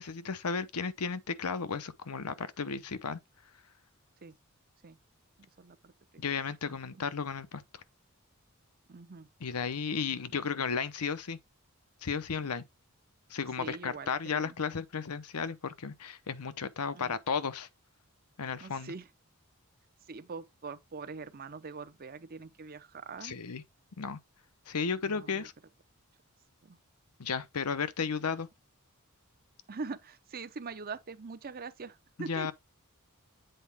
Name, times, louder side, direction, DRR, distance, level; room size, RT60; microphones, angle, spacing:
voice 1, 0.0-3.2 6.2-7.6 9.4-11.4 12.0-12.6 13.3-17.7 18.4-18.9 23.2-23.6 24.0-24.2 24.7-25.5 27.2-28.5 32.2-32.5, left 5 dB, 85° left, 0.8 m, -34 dB
voice 2, 5.4-6.2 6.6-7.0 8.9-9.3 10.1-10.2 13.6-14.6 16.9-17.2 18.6-19.1 20.1-23.4 25.1-25.5 26.6-26.8 29.7-32.5, right 4 dB, 40° right, 0.6 m, -43 dB
7.9 x 4.2 x 3.4 m
head